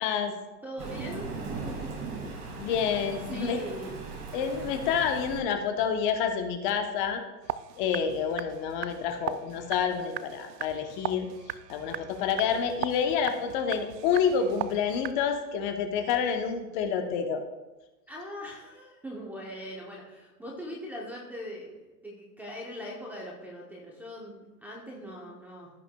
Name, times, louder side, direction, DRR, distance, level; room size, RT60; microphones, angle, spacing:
voice 1, 0.0-0.3 2.6-3.6 4.3-7.2 7.8-11.3 11.7-17.4, left 7 dB, 30° left, 6 dB, 0.8 m, -28 dB
voice 2, 0.6-1.3 1.6-2.5 3.3-4.1 18.1-25.7, equal, 5° right, -6 dB, 0.7 m, -41 dB
Thunder, 0.8-5.4, right 4 dB, 35° right, 2.0 m, -38 dB
sound 1, 7.4-15.1, right 12 dB, 90° right, 0.6 m, -39 dB
16.0 x 5.4 x 2.2 m, 1.1 s
hypercardioid pair, 145°, 48 cm